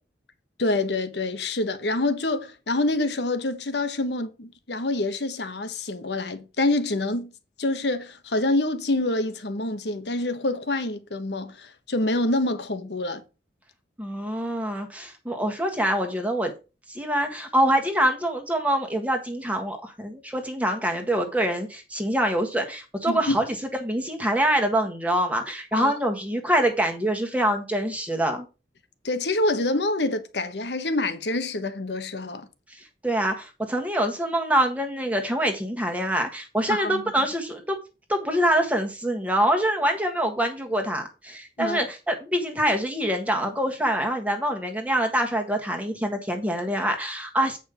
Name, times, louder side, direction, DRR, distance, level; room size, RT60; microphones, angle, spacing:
voice 1, 0.6-7.3 7.6-13.2 23.1-23.4 25.7-25.9 29.0-32.5 36.7-37.0 41.6-41.8, left 2 dB, 75° left, 1.2 m, -26 dB
voice 2, 14.0-16.5 16.9-23.5 23.8-28.5 32.7-37.8 38.1-47.6, right 1 dB, 10° right, 1.4 m, -25 dB
8.6 x 5.3 x 5.0 m
head